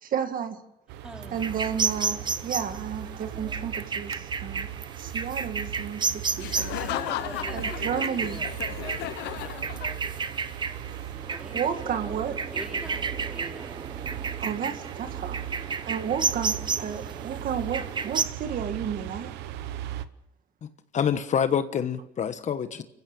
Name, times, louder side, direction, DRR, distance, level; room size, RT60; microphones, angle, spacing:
voice 1, 0.0-0.6 1.3-4.7 5.0-6.8 7.5-8.4 11.5-12.4 14.4-15.4 15.8-19.3, right 8 dB, 55° right, 2.0 m, -32 dB
sound 1, 0.9-20.0, right 11 dB, 90° right, 1.0 m, -38 dB
voice 2, 1.0-1.6 6.8-9.1 9.4-10.4 10.7-10.8 11.2-11.9 12.5-13.9, right 1 dB, 5° right, 3.3 m, -44 dB
sound 2, 1.4-18.2, right 5 dB, 25° right, 1.1 m, -32 dB
Laughter, 6.4-10.3, left 14 dB, 85° left, 1.0 m, -35 dB
voice 3, 20.9-22.8, left 8 dB, 45° left, 1.3 m, -26 dB
28.5 x 15.5 x 6.8 m
cardioid pair, 110°, 17 cm